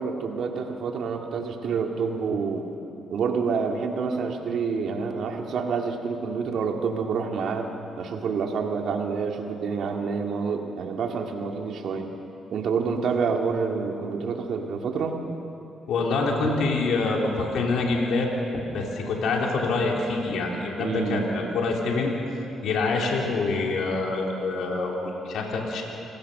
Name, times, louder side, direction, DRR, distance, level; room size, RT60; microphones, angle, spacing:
voice 1, 0.0-2.7 3.1-7.7 8.0-12.1 12.5-15.2 20.8-21.3, right 5 dB, 70° right, 3 dB, 2.2 m, -28 dB
voice 2, 15.9-22.1 22.6-25.8, left 3 dB, 75° left, -1 dB, 3.2 m, -26 dB
27.0 x 16.0 x 6.7 m, 2.9 s
supercardioid pair, 60°, 0 cm